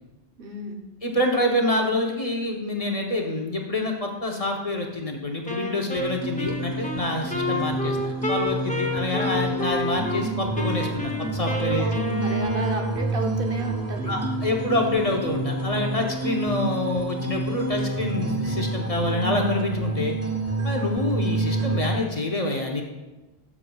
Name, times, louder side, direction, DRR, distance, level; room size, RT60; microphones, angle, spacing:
voice 1, 0.4-0.8 11.7-14.2, right 2 dB, 65° right, 3 dB, 1.1 m, -32 dB
voice 2, 1.0-11.9 14.1-20.1 20.6-22.8, left 1 dB, 40° left, 1 dB, 0.9 m, -26 dB
Wind instrument woodwind instrument, 5.5-10.2 10.6-13.2, left 2 dB, 10° left, 0.6 m, -30 dB
sound 1, 6.0-22.0, right 2 dB, 15° right, 1.0 m, -28 dB
12.0 x 7.2 x 2.3 m, 1.1 s
omnidirectional pair, 1.0 m